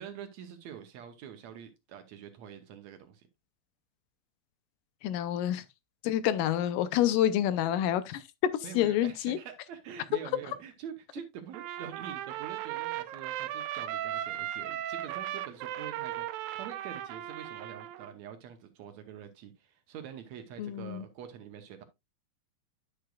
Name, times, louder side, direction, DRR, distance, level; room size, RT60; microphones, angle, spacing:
voice 1, 0.0-3.3 8.6-21.8, right 8 dB, 70° right, 1.8 m, -45 dB
voice 2, 5.0-5.6 6.0-9.4 20.6-21.0, left 11 dB, 80° left, 2.2 m, -28 dB
Trumpet, 11.5-18.1, right 12 dB, 90° right, 2.4 m, -37 dB
10.5 x 6.6 x 2.3 m
omnidirectional pair, 4.0 m